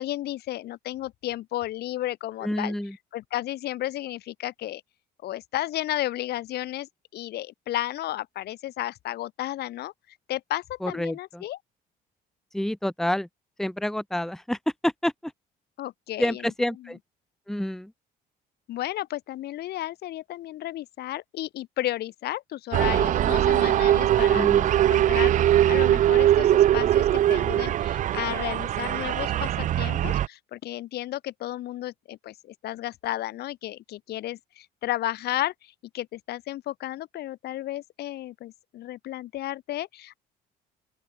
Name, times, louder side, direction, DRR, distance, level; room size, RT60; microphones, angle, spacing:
voice 1, 0.0-2.7 3.1-4.8 5.2-9.9 10.3-11.6 15.8-16.4 18.7-24.5 24.7-40.2, left 14 dB, 75° left, 7.3 m, -33 dB
voice 2, 2.4-3.0 10.8-11.4 12.5-13.3 13.6-15.3 16.2-17.0 17.5-17.9 24.3-24.7, left 1 dB, ahead, 1.4 m, -28 dB
sound 1, 22.7-30.3, right 12 dB, 50° right, 0.5 m, -21 dB
open air
cardioid pair, 110°, 17 cm